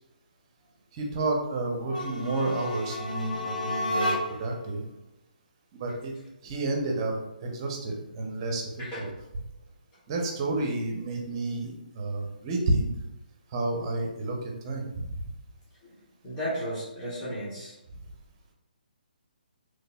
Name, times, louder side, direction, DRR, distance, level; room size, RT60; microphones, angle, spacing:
voice 1, 1.0-4.8 5.8-6.1 6.4-7.2 7.4-8.7 9.0-9.1 10.1-12.9 13.5-15.1, right 2 dB, 30° right, 1 dB, 0.7 m, -30 dB
sound 1, 1.8-4.6, left 1 dB, 60° left, 0.6 m, -31 dB
voice 2, 16.2-17.8, equal, 15° left, -10 dB, 1.4 m, -34 dB
3.9 x 3.1 x 2.3 m, 0.91 s
figure-of-eight pair, 140°, 5 cm